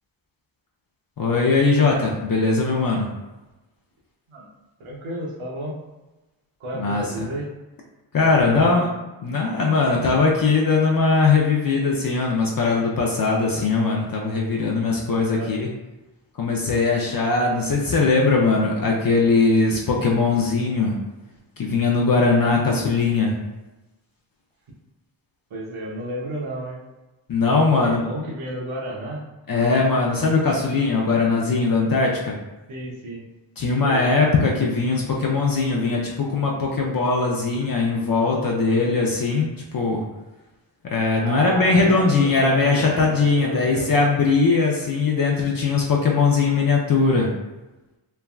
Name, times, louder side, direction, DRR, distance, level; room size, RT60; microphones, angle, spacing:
voice 1, 1.2-3.1 6.7-7.3 8.1-8.9 9.2-15.7 16.4-21.0 21.6-23.3 27.3-28.0 29.5-32.4 33.6-40.0 40.9-47.3, left 4 dB, 45° left, -1 dB, 0.6 m, -20 dB
voice 2, 4.8-5.8 6.6-7.5 8.2-8.8 15.3-15.5 25.5-26.8 27.8-29.2 32.7-33.2 33.8-34.0 41.2-44.0, right 1 dB, 80° right, -3 dB, 0.9 m, -32 dB
3.3 x 2.2 x 2.3 m, 1.1 s
cardioid pair, 45°, 48 cm